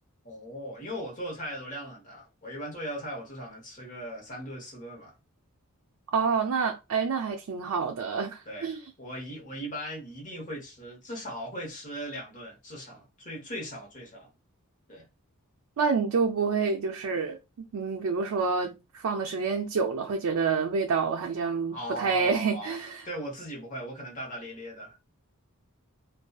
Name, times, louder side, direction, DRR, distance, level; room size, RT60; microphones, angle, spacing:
voice 1, 0.2-5.1 8.5-14.3 14.9-15.0 21.7-22.8 23.0-25.0, right 1 dB, 35° left, 0.9 m, -38 dB
voice 2, 6.1-8.8 15.8-17.4 17.7-23.0, right 5 dB, 75° right, 0.4 m, -28 dB
2.6 x 2.3 x 2.2 m
head